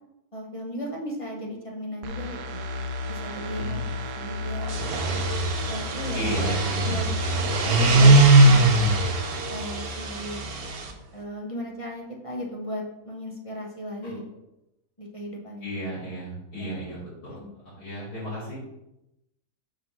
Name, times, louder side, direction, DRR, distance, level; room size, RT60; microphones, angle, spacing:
voice 1, 0.3-2.6 3.1-4.7 5.0-5.3 5.7-6.3 6.8-8.9 9.5-10.4 11.1-14.2 15.0-15.8 16.6-16.7 17.3-17.5, equal, 25° left, -1 dB, 0.8 m, -36 dB
sound 1, 2.0-10.7 11.0-11.2, left 2 dB, 80° right, 1.2 m, -33 dB
voice 2, 3.5-3.9 6.1-6.9 14.0-14.2 15.6-18.5, right 1 dB, 80° left, -10 dB, 3.3 m, -34 dB
sound 2, 4.6-10.9, right 2 dB, 50° right, 0.8 m, -20 dB
5.6 x 3.8 x 6.0 m, 0.89 s
omnidirectional pair, 1.7 m